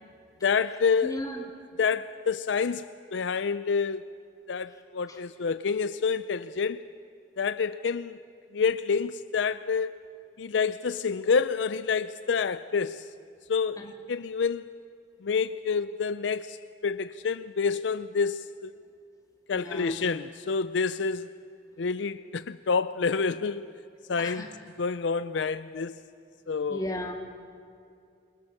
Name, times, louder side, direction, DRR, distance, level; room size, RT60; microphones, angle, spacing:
voice 1, 0.4-1.2 1.8-4.1 4.5-6.8 7.4-8.2 8.5-9.9 10.4-13.1 13.5-14.7 15.2-16.6 16.8-18.7 19.5-21.3 21.8-23.7 24.1-24.4 24.8-26.0 26.5-26.9, left 5 dB, 75° left, 0.5 m, -28 dB
voice 2, 1.0-1.4 13.8-13.9 19.5-20.0 24.2-24.5 26.7-27.1, left 1 dB, 20° left, 2.4 m, -34 dB
27.5 x 22.0 x 6.6 m
head